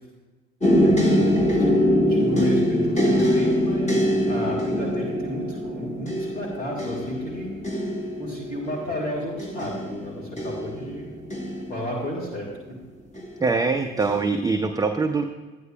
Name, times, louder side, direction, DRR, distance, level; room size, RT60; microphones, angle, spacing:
sound 1, 0.6-12.5 13.2-13.6 14.0-14.3, equal, 20° left, 1.8 m, -23 dB
voice 1, 0.7-1.3 1.6-1.8 2.1-7.5 8.2-11.1 11.7-12.5, equal, 85° left, -4 dB, 1.7 m, -32 dB
voice 2, 13.4-15.2, right 4 dB, 10° right, 5 dB, 0.5 m, -23 dB
13.5 x 9.3 x 2.3 m, 1.2 s
figure-of-eight pair, 55°, 38 cm